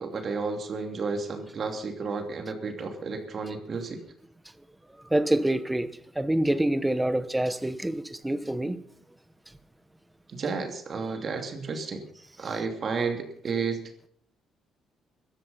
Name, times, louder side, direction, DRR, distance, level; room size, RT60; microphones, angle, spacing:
voice 1, 0.0-4.0 10.3-12.1 12.4-13.8, right 4 dB, 45° right, 2.8 m, -32 dB
voice 2, 5.1-8.8, right 1 dB, 10° right, 1.1 m, -26 dB
16.5 x 13.0 x 5.6 m
cardioid pair, 105°, 0 cm